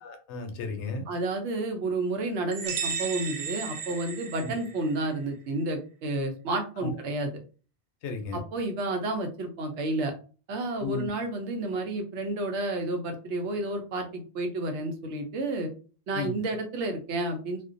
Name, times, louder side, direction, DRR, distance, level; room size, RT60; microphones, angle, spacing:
voice 1, 0.0-1.0 4.4-4.5 6.8-6.9 8.0-8.4 10.8-11.1 16.1-16.4, left 3 dB, 85° left, 6 dB, 0.9 m, -34 dB
voice 2, 1.1-7.3 8.3-10.1 10.5-15.7 16.1-17.6, right 2 dB, 80° right, 5 dB, 0.9 m, -31 dB
sound 1, 2.5-5.1, right 6 dB, 60° right, 0.5 m, -34 dB
2.4 x 2.1 x 2.5 m, 0.37 s
omnidirectional pair, 1.2 m